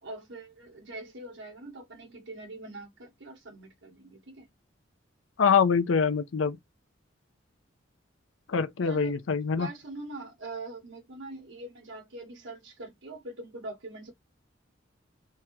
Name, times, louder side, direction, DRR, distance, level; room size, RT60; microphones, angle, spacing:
voice 1, 0.0-4.5 8.8-9.2 9.6-14.1, right 2 dB, 65° right, 1.6 m, -43 dB
voice 2, 5.4-6.6 8.5-9.7, left 6 dB, 75° left, 0.5 m, -24 dB
3.5 x 2.8 x 3.0 m
head